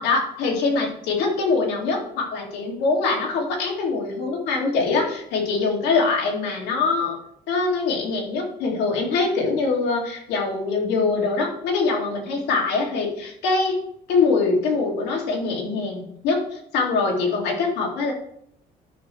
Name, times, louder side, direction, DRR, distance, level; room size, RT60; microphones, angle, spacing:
voice 1, 0.0-7.2 7.5-13.8 14.1-18.1, left 4 dB, 85° left, 0 dB, 2.3 m, -23 dB
11.5 x 6.1 x 3.2 m, 0.70 s
cardioid pair, 110°, 17 cm